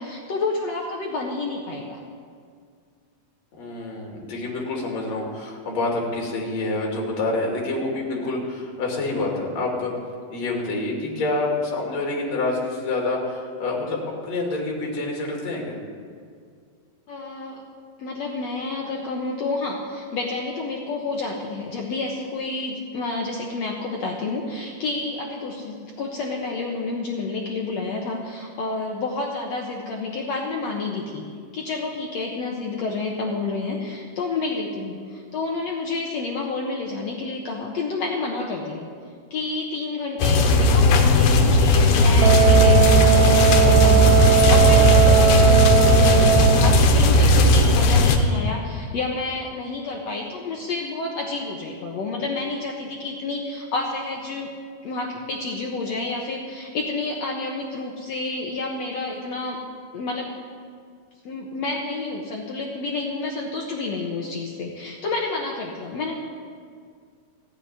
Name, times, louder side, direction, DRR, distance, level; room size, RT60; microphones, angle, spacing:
voice 1, 0.0-2.0 17.1-17.6 18.0-31.2 31.5-38.9 39.3-54.5 54.8-59.6 59.9-60.3 61.2-66.2, left 3 dB, 65° left, -1 dB, 1.8 m, -29 dB
voice 2, 3.5-9.9 10.3-15.8, left 2 dB, 45° left, -1 dB, 3.4 m, -27 dB
sound 1, 40.2-48.2, left 1 dB, 85° left, 3.0 m, -16 dB
Wind instrument woodwind instrument, 42.2-46.9, right 11 dB, 80° right, 1.9 m, -19 dB
15.0 x 7.7 x 9.7 m, 2.1 s
omnidirectional pair, 4.4 m